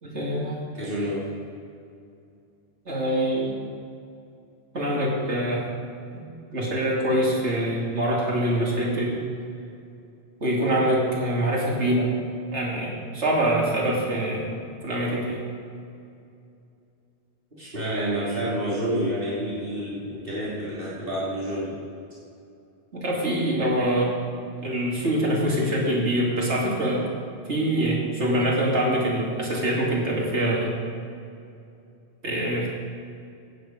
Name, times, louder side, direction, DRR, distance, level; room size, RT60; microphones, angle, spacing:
voice 1, 0.0-0.6 2.9-3.6 4.7-5.7 6.5-9.2 10.4-12.1 12.5-14.5 14.8-15.4 22.9-24.1 24.6-27.1 27.5-30.7 32.2-32.7, right 1 dB, 85° right, -3 dB, 2.8 m, -24 dB
voice 2, 0.7-1.3 17.5-21.8, equal, 55° right, -8 dB, 3.3 m, -28 dB
15.0 x 9.0 x 5.1 m, 2.5 s
omnidirectional pair, 1.1 m